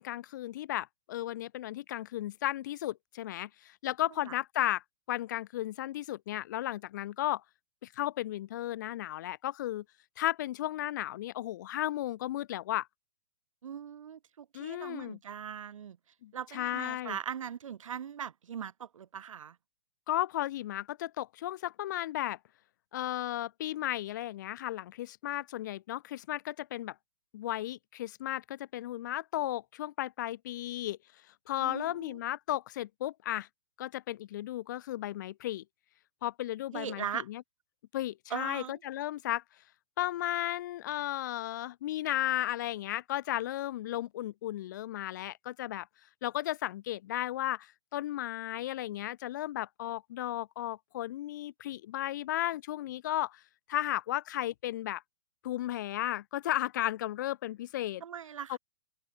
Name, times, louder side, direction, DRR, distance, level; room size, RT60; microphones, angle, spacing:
voice 1, 0.0-7.4 7.8-9.8 10.2-12.9 14.5-15.2 16.2-17.2 20.1-22.4 22.9-26.9 27.3-31.0 31.5-33.5 33.8-35.6 36.2-37.4 37.9-39.4 40.0-45.9 46.2-53.4 53.7-55.0 55.4-58.0 58.5-58.6, left 14 dB, 35° left, 1.2 m, -34 dB
voice 2, 13.6-16.0 16.3-19.6 31.6-32.2 36.7-37.3 38.3-38.8 58.0-58.6, right 8 dB, 70° right, 3.2 m, -40 dB
hypercardioid pair, 180°, 17 cm